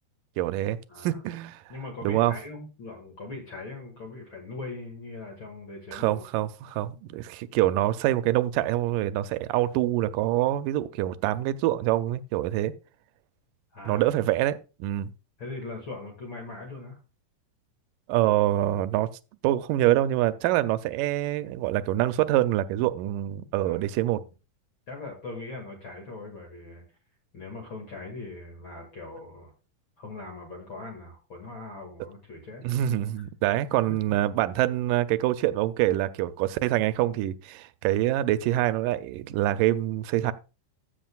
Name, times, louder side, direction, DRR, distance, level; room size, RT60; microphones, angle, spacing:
voice 1, 0.4-1.6 2.0-2.4 5.9-12.7 13.9-15.1 18.1-19.1 19.4-24.2 32.6-40.3, right 14 dB, 85° right, 2.2 m, -25 dB
voice 2, 0.9-1.2 1.7-6.2 13.7-14.1 15.4-17.0 23.6-24.3 24.9-26.8 27.3-29.5 30.0-32.6 34.1-34.2, left 3 dB, 40° left, 2.4 m, -40 dB
14.5 x 7.6 x 2.4 m
omnidirectional pair, 3.7 m